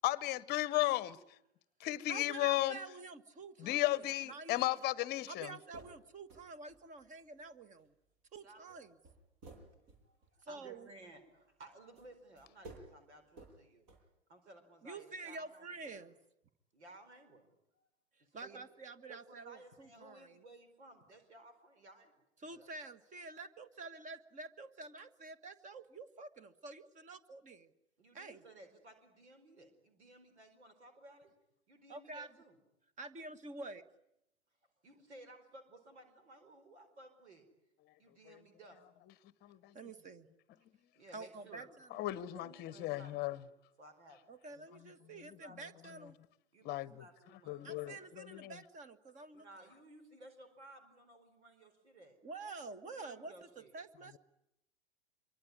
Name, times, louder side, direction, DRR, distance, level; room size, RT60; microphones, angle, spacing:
voice 1, 0.0-1.2 1.8-2.8 3.6-5.5 39.4-39.7 41.9-43.4 46.6-46.9 47.5-48.6, left 16 dB, 30° left, 1.1 m, -34 dB
voice 2, 2.1-4.7 5.3-7.9 8.3-9.0 10.4-10.9 14.8-16.2 18.3-20.4 22.4-27.7 28.1-28.4 31.9-32.3 33.0-33.8 39.7-40.3 41.1-42.0 44.3-46.2 47.6-49.4 52.2-54.2, right 3 dB, 20° right, 1.6 m, -48 dB
sound 1, 5.7-6.0 6.3-7.5 7.8-7.9 8.7-8.8 9.0-10.7 12.0-12.1 12.4-12.9 13.3-13.6 13.9-14.0, right 2 dB, 45° right, 7.8 m, -54 dB
voice 3, 8.4-8.8 10.0-13.9 14.3-15.9 16.7-17.9 18.2-18.6 19.1-22.1 22.4-22.7 28.0-31.3 31.7-32.6 34.8-37.5 38.0-38.8 40.9-41.7 42.3-43.4 43.8-44.2 45.0-45.9 46.5-47.6 49.3-52.2 52.8-53.7, right 2 dB, 75° right, 4.6 m, -57 dB
26.0 x 23.5 x 9.7 m
figure-of-eight pair, 100°, 34 cm